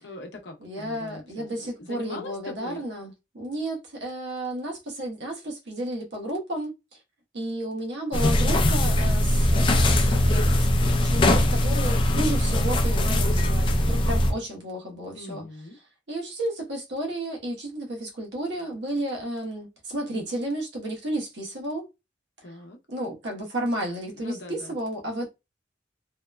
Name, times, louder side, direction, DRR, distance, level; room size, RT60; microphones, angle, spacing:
voice 1, 0.0-2.8 15.1-15.8 22.4-22.8 24.2-24.7, left 2 dB, 70° left, 0.6 m, -41 dB
voice 2, 0.6-6.7 7.3-15.4 16.1-21.9 22.9-25.3, right 1 dB, 70° right, 0.9 m, -32 dB
sound 1, 8.1-14.3, left 1 dB, 30° left, 0.3 m, -21 dB
2.8 x 2.1 x 2.3 m
head